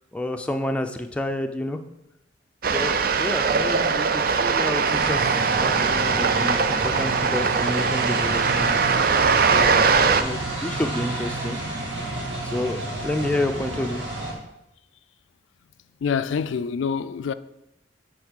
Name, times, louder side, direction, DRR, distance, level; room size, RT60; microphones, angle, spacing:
voice 1, 0.1-1.8 2.6-9.0 9.5-11.8 12.4-14.1, left 1 dB, 5° left, 0.4 m, -29 dB
sound 1, 2.6-10.2, right 5 dB, 50° right, 0.4 m, -21 dB
sound 2, 4.9-14.3, right 2 dB, 85° right, 2.0 m, -30 dB
voice 2, 8.5-8.8 16.0-17.3, left 6 dB, 90° left, 0.4 m, -27 dB
8.2 x 4.0 x 6.3 m
head